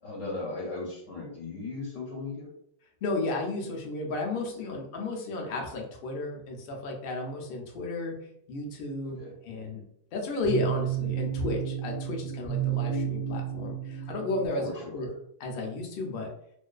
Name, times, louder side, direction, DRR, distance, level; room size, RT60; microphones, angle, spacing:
voice 1, 0.0-2.5 9.2-9.3 14.6-15.2, left 3 dB, 80° left, -2 dB, 1.0 m, -37 dB
voice 2, 3.0-8.1 8.5-9.8 10.1-15.1 15.4-16.3, left 2 dB, 60° left, 1 dB, 0.6 m, -33 dB
sound 1, 10.4-14.5, right 9 dB, 40° right, 0.6 m, -31 dB
2.4 x 2.2 x 2.3 m, 0.74 s
omnidirectional pair, 1.3 m